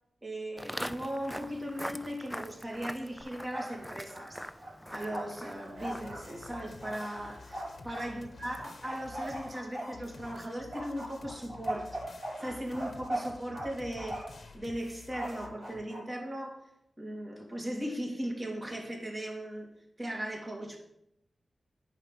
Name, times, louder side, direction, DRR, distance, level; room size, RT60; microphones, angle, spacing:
voice 1, 0.2-4.4 4.9-14.2 14.5-16.6 17.0-19.7 20.0-20.8, equal, 25° right, 0 dB, 2.7 m, -38 dB
Walk footsteps, 0.6-9.8, equal, ahead, 0.4 m, -45 dB
Bark, 3.2-3.8 4.1-8.1 8.6-10.4 10.7-13.7 14.0-14.4 15.1-16.0, right 1 dB, 70° right, 4.0 m, -40 dB
sound 1, 5.8-15.8, left 4 dB, 60° left, 1.1 m, -51 dB
9.9 x 5.1 x 7.6 m, 0.78 s
wide cardioid pair, 85°, 0 cm